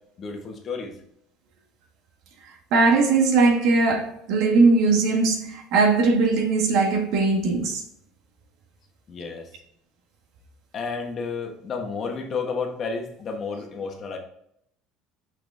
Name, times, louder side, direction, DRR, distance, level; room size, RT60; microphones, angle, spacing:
voice 1, 0.2-0.9 9.1-9.5 10.7-14.2, left 5 dB, 35° left, 1.4 m, -31 dB
voice 2, 2.7-7.8, right 3 dB, 65° right, 1.5 m, -20 dB
6.0 x 6.0 x 3.4 m
cardioid pair, 145°, 0 cm